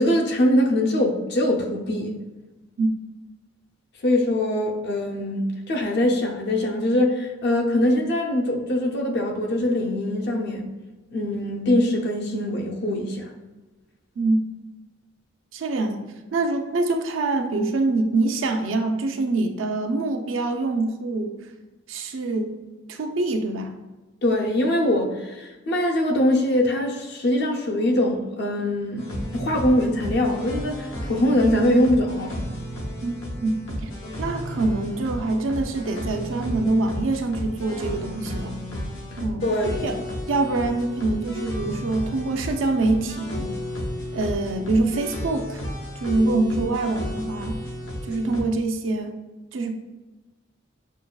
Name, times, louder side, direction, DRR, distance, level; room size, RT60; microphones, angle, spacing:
voice 1, 0.0-2.1 4.0-10.7 11.1-13.3 24.2-32.4 39.4-39.9, left 1 dB, 60° left, 0.6 m, -23 dB
voice 2, 15.5-16.0 16.3-21.3 21.9-22.6 22.9-23.7 33.0-33.9 34.2-38.6 39.2-39.5 39.8-40.0 40.3-43.6 44.1-45.6 46.0-47.6 48.1-49.2 49.5-49.7, right 2 dB, 85° right, 0.5 m, -25 dB
sound 1, 29.0-48.4, equal, 85° left, 0.9 m, -33 dB
6.0 x 2.2 x 2.3 m
head